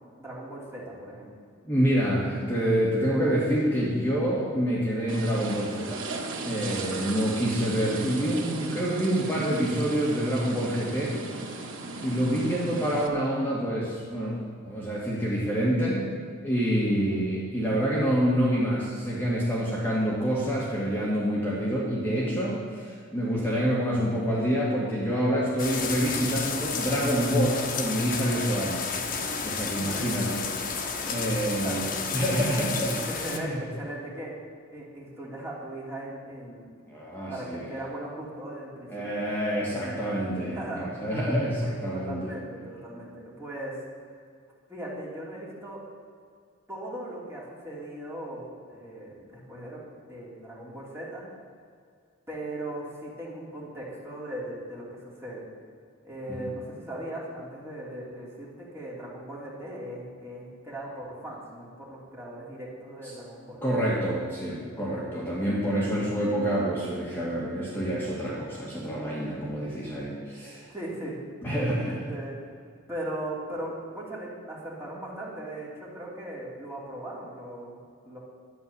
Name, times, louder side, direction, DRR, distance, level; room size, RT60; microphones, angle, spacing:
voice 1, 0.2-1.3 16.8-16.9 29.7-30.2 31.6-31.8 33.1-34.3 34.7-36.6 37.3-39.2 40.5-40.9 41.6-43.7 44.7-45.8 46.7-51.2 52.3-55.5 56.0-63.6 65.2-65.6 70.7-71.2 71.8-72.4 72.9-77.8 78.0-78.2, right 1 dB, 15° right, -5 dB, 3.2 m, -38 dB
voice 2, 1.7-6.0 6.4-11.2 12.0-16.1 16.4-29.1 29.4-30.7 31.1-31.8 32.1-33.6 36.9-37.6 38.9-42.3 56.3-56.5 63.6-70.7 71.4-71.9, equal, 10° left, -6 dB, 2.0 m, -27 dB
sound 1, 5.1-13.1, right 3 dB, 75° right, 1.8 m, -36 dB
sound 2, 25.6-33.4, left 5 dB, 45° left, 1.3 m, -32 dB
11.5 x 9.6 x 7.0 m, 2.2 s
head